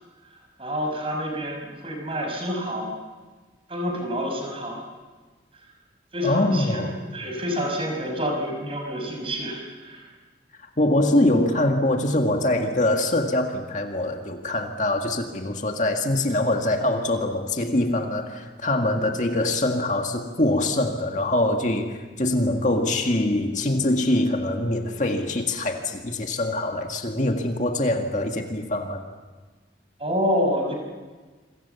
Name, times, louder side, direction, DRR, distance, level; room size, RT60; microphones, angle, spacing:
voice 1, 0.6-3.0 3.7-4.9 6.1-6.8 7.1-10.1 30.0-30.7, equal, 30° right, 2 dB, 6.1 m, -28 dB
voice 2, 6.2-7.0 10.8-29.0, left 1 dB, 40° left, 3 dB, 2.0 m, -23 dB
27.5 x 25.5 x 7.1 m, 1.3 s
head